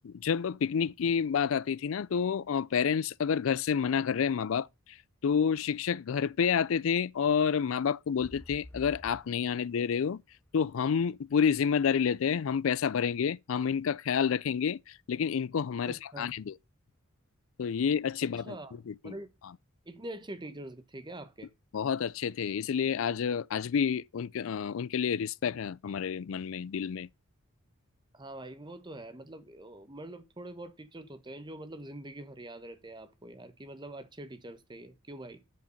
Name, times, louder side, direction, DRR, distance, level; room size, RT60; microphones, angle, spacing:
voice 1, 0.0-4.7 5.2-10.2 10.5-14.8 15.1-16.5 17.6-18.6 18.9-19.1 21.7-27.1, left 7 dB, 70° left, 0.4 m, -29 dB
sound 1, 8.2-12.1 12.6-12.7, left 1 dB, 10° left, 0.5 m, -50 dB
voice 2, 15.8-16.3 18.2-18.7 19.0-19.3 19.9-21.5 28.1-35.4, right 1 dB, 20° right, 1.1 m, -44 dB
8.4 x 5.1 x 5.2 m
head